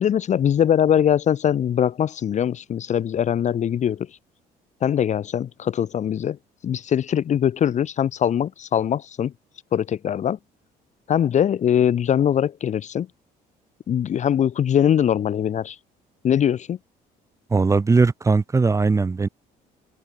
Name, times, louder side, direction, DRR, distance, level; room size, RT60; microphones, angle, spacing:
voice 1, 0.0-4.2 4.8-6.4 6.6-9.3 9.7-10.4 11.1-13.1 13.9-15.8 16.2-16.8, left 9 dB, 45° left, 0.9 m, -22 dB
voice 2, 17.5-19.3, right 4 dB, 20° right, 0.7 m, -19 dB
open air
cardioid pair, 110°, 17 cm